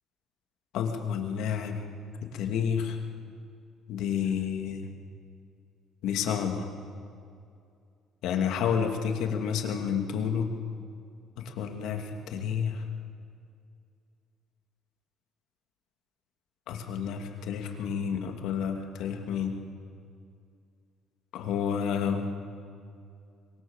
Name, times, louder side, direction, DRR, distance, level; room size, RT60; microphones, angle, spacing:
voice 1, 0.7-1.8 2.2-3.0 3.9-4.9 6.0-6.7 8.2-10.5 11.4-12.8 16.7-19.5 21.3-22.3, left 7 dB, 65° left, 4 dB, 2.6 m, -30 dB
26.5 x 22.0 x 7.3 m, 2.4 s
cardioid pair, 180°, 0 cm